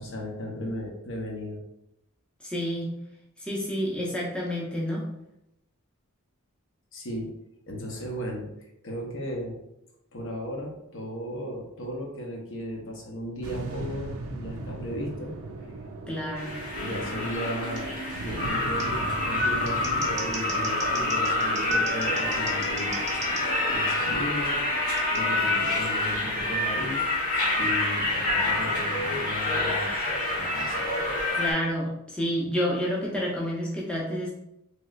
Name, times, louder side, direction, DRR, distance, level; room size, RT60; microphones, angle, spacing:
voice 1, 0.0-1.6 6.9-7.3 7.7-8.5 8.8-9.6 10.1-15.3 16.8-24.6 25.1-27.0 27.6-29.9 30.3-30.9, equal, 60° left, 0 dB, 0.7 m, -35 dB
voice 2, 2.4-2.9 3.4-5.0 16.1-16.6 31.3-34.3, equal, 5° left, -4 dB, 0.6 m, -29 dB
sound 1, 13.4-29.8, right 2 dB, 70° right, 0.4 m, -40 dB
sound 2, 16.4-31.5, left 2 dB, 90° left, 1.3 m, -27 dB
Scissors, 17.7-17.8 18.8-18.9 19.5-23.4 25.0-25.2, right 4 dB, 35° right, 0.6 m, -39 dB
3.0 x 2.9 x 2.3 m, 0.83 s
head